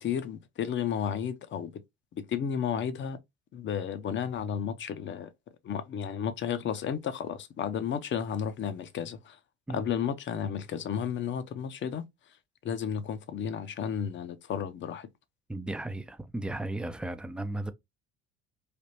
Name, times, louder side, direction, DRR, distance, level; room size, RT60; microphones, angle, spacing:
voice 1, 0.0-1.7 2.1-3.2 3.5-5.3 5.6-9.4 9.7-12.1 12.6-15.1, left 8 dB, 40° left, 0.6 m, -32 dB
voice 2, 15.5-17.7, right 2 dB, 5° right, 0.3 m, -35 dB
3.3 x 2.4 x 2.7 m
hypercardioid pair, 70°, 30 cm